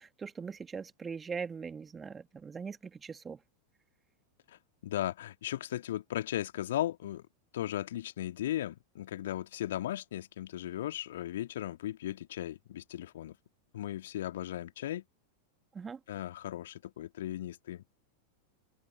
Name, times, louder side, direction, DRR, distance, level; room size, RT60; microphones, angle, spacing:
voice 1, 0.0-3.4 15.7-16.0, right 5 dB, 15° right, 2.6 m, -41 dB
voice 2, 4.8-7.3 7.5-13.4 13.7-15.0 16.1-17.8, left 12 dB, 60° left, 2.6 m, -36 dB
figure-of-eight pair, 90°, 0 cm